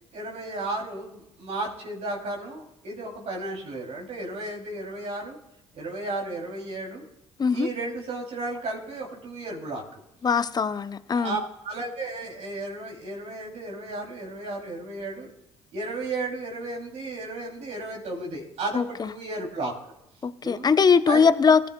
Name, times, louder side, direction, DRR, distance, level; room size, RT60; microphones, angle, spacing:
voice 1, 0.1-5.4 5.7-7.0 7.5-10.0 11.1-15.3 15.7-19.7 20.4-20.7 21.1-21.2, right 2 dB, 55° right, -2 dB, 3.0 m, -34 dB
voice 2, 10.2-11.4 18.7-18.8 20.2-21.7, left 5 dB, 30° left, 13 dB, 0.7 m, -21 dB
20.0 x 11.0 x 2.3 m, 0.82 s
hypercardioid pair, 55°, 13 cm